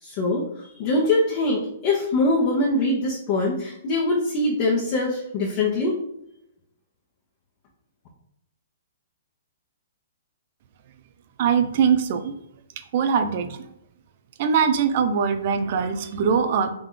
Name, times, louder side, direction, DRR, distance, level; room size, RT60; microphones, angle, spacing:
voice 1, 0.0-6.0, left 2 dB, 40° left, -6 dB, 1.2 m, -23 dB
voice 2, 11.4-12.3 12.9-13.6 14.4-16.7, right 6 dB, 50° right, 8 dB, 0.6 m, -22 dB
3.8 x 3.1 x 3.9 m, 0.79 s
hypercardioid pair, 140°, 0 cm